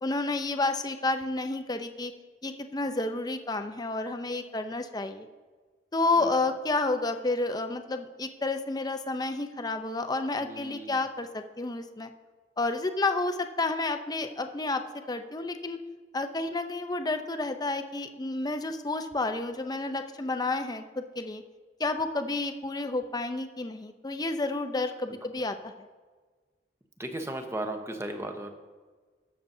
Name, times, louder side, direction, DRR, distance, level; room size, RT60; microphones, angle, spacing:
voice 1, 0.0-2.1 2.4-5.3 5.9-12.1 12.6-14.8 15.1-15.8 16.1-21.4 21.8-25.9, left 2 dB, 20° left, 7 dB, 0.6 m, -30 dB
voice 2, 10.4-11.0 27.0-28.5, right 1 dB, 15° right, 5 dB, 0.9 m, -36 dB
19.5 x 6.9 x 2.7 m, 1.4 s
head